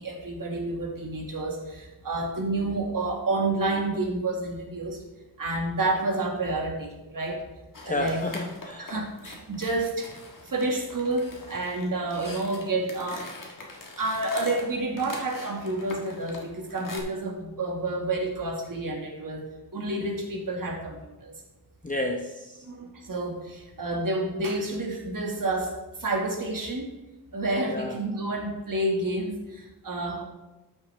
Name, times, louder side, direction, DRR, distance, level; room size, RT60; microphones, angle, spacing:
voice 1, 0.0-5.0 5.4-7.4 7.8-8.2 8.8-10.1 10.5-13.3 14.0-19.4 19.7-21.3 22.6-25.8 26.0-26.9 27.3-30.2, right 2 dB, 55° right, 1 dB, 1.8 m, -29 dB
sound 1, 7.7-17.0, left 2 dB, 50° left, 1.6 m, -43 dB
voice 2, 7.9-8.9 21.8-22.5 27.7-27.9, left 2 dB, 20° left, 1 dB, 0.7 m, -30 dB
12.5 x 6.5 x 3.3 m, 1.0 s
wide cardioid pair, 95°, 40 cm